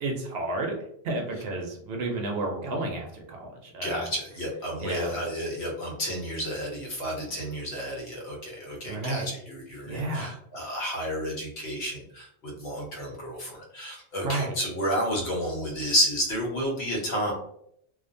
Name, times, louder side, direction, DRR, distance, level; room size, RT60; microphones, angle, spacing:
voice 1, 0.0-0.7 1.0-4.1 4.8-5.1 8.8-9.3 9.9-10.4 14.2-14.6, right 2 dB, 65° right, 1 dB, 0.8 m, -31 dB
voice 2, 3.8-17.3, equal, 70° left, -2 dB, 1.1 m, -31 dB
2.4 x 2.1 x 2.5 m, 0.71 s
omnidirectional pair, 1.1 m